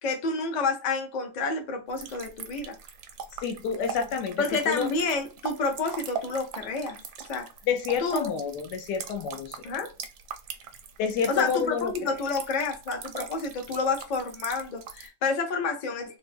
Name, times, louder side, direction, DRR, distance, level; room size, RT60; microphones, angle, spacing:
voice 1, 0.0-2.8 4.4-7.0 7.3-7.5 8.0-8.3 9.6-9.9 11.3-16.2, left 4 dB, 55° left, 0.5 m, -29 dB
sound 1, 1.9-15.1, right 7 dB, 80° right, 1.2 m, -41 dB
voice 2, 3.4-4.9 7.7-9.6 11.0-12.2, left 6 dB, 90° left, 1.3 m, -29 dB
3.3 x 2.1 x 3.3 m
omnidirectional pair, 1.7 m